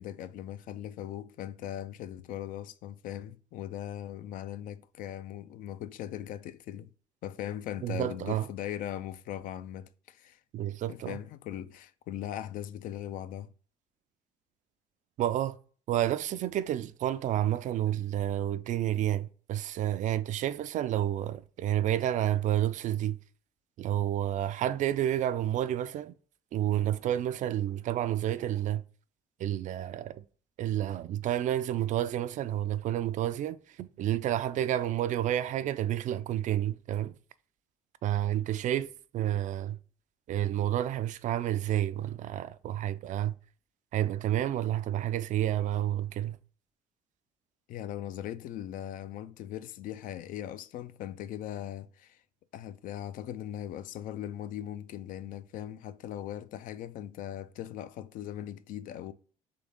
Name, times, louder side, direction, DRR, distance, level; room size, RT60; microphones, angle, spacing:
voice 1, 0.0-6.9 7.2-10.4 10.9-13.5 47.7-52.2 52.5-59.1, left 11 dB, 65° left, 0.4 m, -39 dB
voice 2, 7.8-8.5 10.5-11.2 15.2-15.6 15.9-23.2 23.8-26.1 26.5-28.8 29.4-30.2 30.6-37.1 38.0-39.8 40.3-43.4 43.9-46.4, right 12 dB, 55° right, 0.4 m, -30 dB
3.8 x 3.3 x 3.4 m
supercardioid pair, 85°, 15 cm